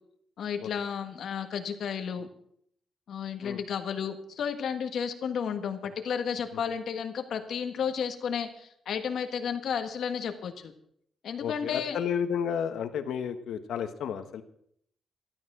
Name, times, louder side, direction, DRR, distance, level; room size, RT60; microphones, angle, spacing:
voice 1, 0.4-2.3 3.1-10.7 11.2-12.0, left 7 dB, 60° left, 7 dB, 1.6 m, -32 dB
voice 2, 11.4-14.4, left 8 dB, 85° left, 9 dB, 1.4 m, -32 dB
14.0 x 12.5 x 6.2 m, 0.68 s
wide cardioid pair, 170°, 0 cm